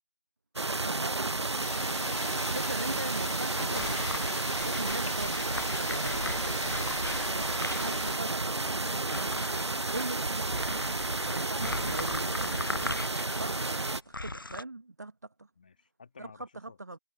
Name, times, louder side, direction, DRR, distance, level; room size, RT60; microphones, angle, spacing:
voice 1, 0.6-1.3 2.3-4.1 4.5-6.4 7.5-8.6 9.9-10.6 11.2-12.6 13.4-15.1 15.4-15.5 16.2-16.3 16.6-17.0, right 2 dB, 35° right, 1.3 m, -40 dB
sound 1, 0.6-14.0, right 2 dB, 60° right, 0.7 m, -32 dB
sound 2, 1.6-8.1, left 1 dB, 85° left, 1.8 m, -40 dB
sound 3, 3.7-14.6, left 2 dB, 45° left, 0.4 m, -39 dB
voice 2, 8.5-9.0 11.7-12.4 15.6-16.8, left 5 dB, 15° left, 2.4 m, -52 dB
figure-of-eight pair, 170°, 16 cm